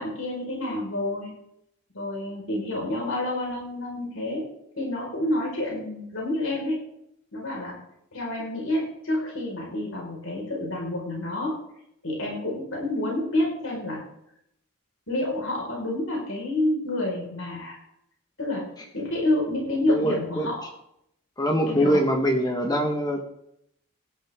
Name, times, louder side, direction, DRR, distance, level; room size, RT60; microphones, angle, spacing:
voice 1, 0.0-1.3 1.9-4.5 4.8-6.8 7.3-7.7 8.1-11.6 12.0-14.0 15.1-17.8 18.4-18.6 18.9-20.7 21.7-22.0, left 1 dB, 75° left, -2 dB, 5.2 m, -28 dB
voice 2, 19.9-20.5 21.4-23.3, equal, 20° left, 3 dB, 1.5 m, -23 dB
17.5 x 13.0 x 3.7 m, 0.77 s
head